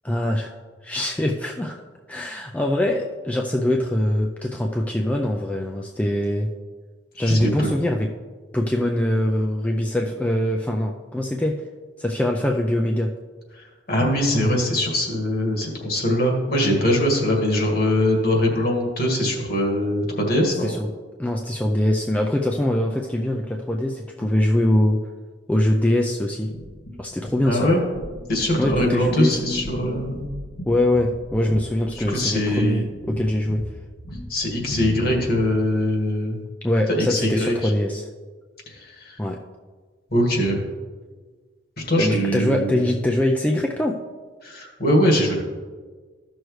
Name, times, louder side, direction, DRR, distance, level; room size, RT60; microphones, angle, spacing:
voice 1, 0.0-0.6 0.8-1.8 2.1-6.5 7.1-8.1 8.5-11.6 12.0-13.1 20.6-20.9 21.2-25.0 25.5-26.5 27.0-27.7 28.5-29.4 30.6-33.6 36.6-38.1 39.2-39.4 42.0-44.0, left 1 dB, 10° left, 1 dB, 0.4 m, -23 dB
voice 2, 7.3-7.7 13.5-20.7 27.4-27.8 28.3-30.3 31.9-32.8 34.3-36.4 36.9-37.7 38.7-39.2 40.1-40.6 41.8-42.8 44.4-45.3, left 1 dB, 55° left, 0 dB, 1.9 m, -22 dB
sound 1, 26.5-35.6, equal, 85° left, 1.5 m, -35 dB
14.0 x 6.2 x 3.2 m, 1.4 s
head